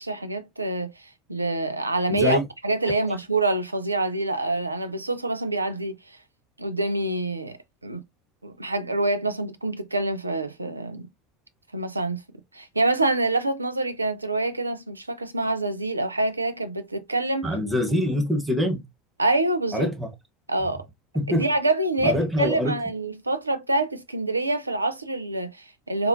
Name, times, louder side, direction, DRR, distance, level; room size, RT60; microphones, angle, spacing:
voice 1, 0.0-6.2 6.6-7.6 7.8-8.0 8.4-11.1 11.7-12.2 12.5-17.5 19.2-19.9 20.5-20.9 21.3-26.1, right 2 dB, 90° right, 0.5 m, -26 dB
voice 2, 2.1-2.4 17.4-18.8 19.7-20.1 21.1-21.5 22.0-22.8, left 1 dB, 10° right, 1.2 m, -24 dB
4.0 x 2.5 x 2.6 m
figure-of-eight pair, 75°, 0 cm